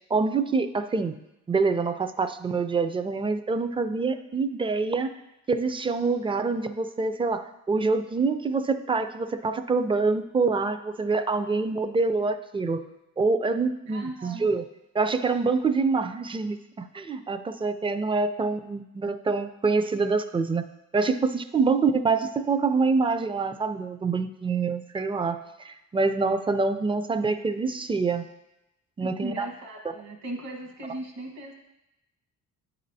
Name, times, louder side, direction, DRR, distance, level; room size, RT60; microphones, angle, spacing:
voice 1, 0.1-1.2 1.5-5.1 5.5-12.8 13.2-14.6 14.9-20.6 20.9-25.4 25.6-28.3 29.0-29.5, right 4 dB, 20° right, 10 dB, 0.4 m, -26 dB
voice 2, 13.8-14.5 29.0-31.5, right 1 dB, 60° right, 2 dB, 1.4 m, -37 dB
9.4 x 4.3 x 2.7 m, 0.92 s
cardioid pair, 90°, 30 cm